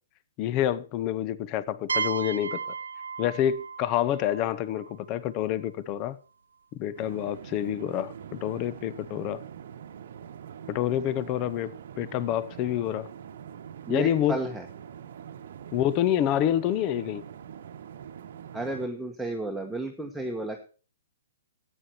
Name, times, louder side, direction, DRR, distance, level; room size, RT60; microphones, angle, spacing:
voice 1, 0.4-2.6 3.2-6.2 6.7-9.4 10.7-13.1 13.9-14.4 15.7-17.2, left 11 dB, 35° left, 0.9 m, -27 dB
sound 1, 1.9-5.5, right 6 dB, 85° right, 0.6 m, -34 dB
sound 2, 7.0-18.9, right 8 dB, 65° right, 1.0 m, -44 dB
voice 2, 13.9-14.7 18.5-20.6, right 2 dB, ahead, 1.4 m, -32 dB
13.5 x 9.1 x 4.4 m
hypercardioid pair, 130°, 0 cm